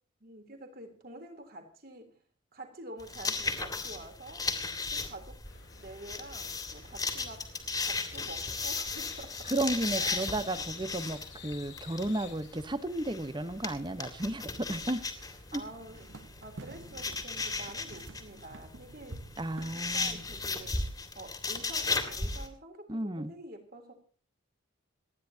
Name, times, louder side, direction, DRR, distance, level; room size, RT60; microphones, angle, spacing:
voice 1, 0.2-2.2 2.5-5.4 5.8-7.5 7.8-9.5 10.0-10.6 15.5-19.2 19.7-20.8 21.1-23.9, right 1 dB, 45° right, 4 dB, 3.5 m, -47 dB
sound 1, 3.0-22.5, left 4 dB, 20° left, 2.3 m, -36 dB
sound 2, 5.4-15.7, left 6 dB, 60° left, 2.2 m, -51 dB
voice 2, 9.5-15.0 15.5-15.6 19.4-20.2 22.9-23.3, right 1 dB, 20° right, 12 dB, 1.1 m, -33 dB
sound 3, 15.7-21.0, right 2 dB, 70° right, 1.1 m, -49 dB
27.5 x 10.5 x 2.9 m, 0.40 s
head